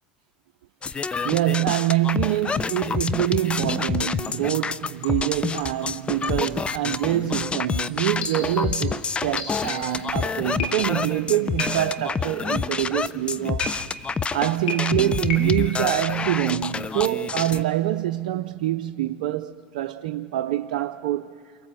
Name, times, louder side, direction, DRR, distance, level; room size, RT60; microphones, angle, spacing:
sound 1, 0.8-17.6, left 5 dB, 20° left, 0.6 m, -28 dB
voice 1, 1.2-13.7 14.3-21.7, right 13 dB, 75° right, 0.6 m, -25 dB
sound 2, 3.5-3.8 4.2-4.6 5.0-5.9 6.2-6.5 6.9-7.2 7.8-10.1 10.6-11.2 11.6-12.1 13.6-14.2 14.7-15.7, left 3 dB, 80° left, 3.3 m, -35 dB
28.5 x 24.0 x 7.6 m
hypercardioid pair, 95°, 5 cm